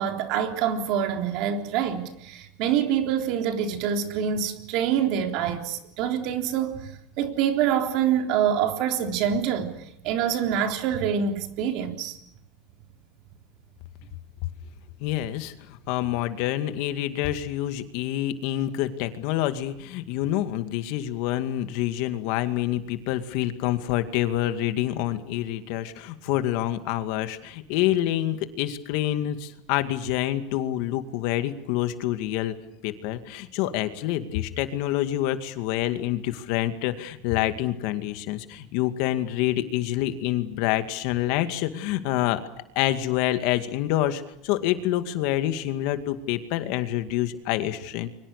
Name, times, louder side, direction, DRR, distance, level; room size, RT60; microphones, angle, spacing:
voice 1, 0.0-6.9 7.2-12.2, right 8 dB, 55° right, 3.7 m, -26 dB
voice 2, 15.0-32.5 32.8-42.4 42.8-48.1, left 13 dB, 60° left, 2.2 m, -27 dB
30.0 x 24.0 x 6.6 m
supercardioid pair, 140°, 0 cm